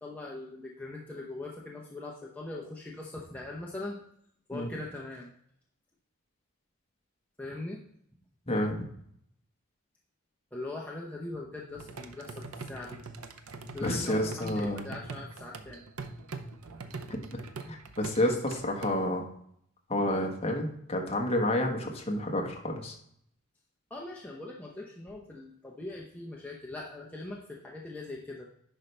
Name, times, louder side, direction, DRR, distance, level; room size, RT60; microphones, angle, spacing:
voice 1, 0.0-4.0 4.5-5.3 7.4-7.8 10.5-13.0 13.7-15.8 23.9-28.5, left 2 dB, 5° left, -3 dB, 0.7 m, -41 dB
sound 1, 11.7-18.9, right 3 dB, 75° right, 0.7 m, -43 dB
voice 2, 13.8-14.8 17.1-17.2 17.7-19.3 19.9-22.9, left 1 dB, 25° left, 1 dB, 1.3 m, -29 dB
10.0 x 5.6 x 3.3 m, 0.70 s
head